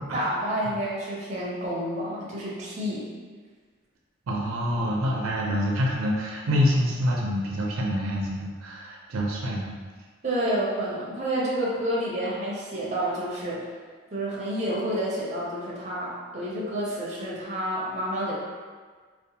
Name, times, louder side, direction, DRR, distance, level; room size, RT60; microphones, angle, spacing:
voice 1, 0.1-3.1 10.2-13.7 14.1-18.3, right 1 dB, 35° right, -6 dB, 0.5 m, -29 dB
voice 2, 4.3-9.8, equal, 85° right, -2 dB, 0.4 m, -26 dB
2.7 x 2.1 x 2.7 m, 1.5 s
head